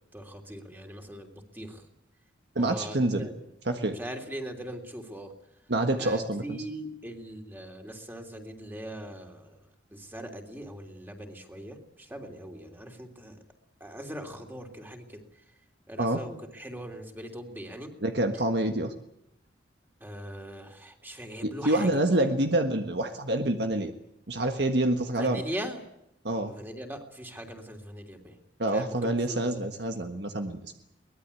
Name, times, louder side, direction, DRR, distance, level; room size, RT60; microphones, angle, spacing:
voice 1, 0.1-1.8 2.6-3.3 3.9-5.3 6.0-9.6 9.9-13.4 13.8-15.2 15.9-17.9 20.0-21.9 25.2-25.8 26.5-28.4 28.7-29.7, right 1 dB, 10° right, 3 dB, 3.2 m, -40 dB
voice 2, 2.5-3.3 3.6-4.0 5.7-6.6 16.0-16.2 18.0-18.9 21.4-23.9 24.3-25.4 26.2-26.5 28.6-30.7, right 1 dB, 65° right, 5 dB, 1.6 m, -27 dB
23.5 x 20.0 x 8.5 m, 0.82 s
head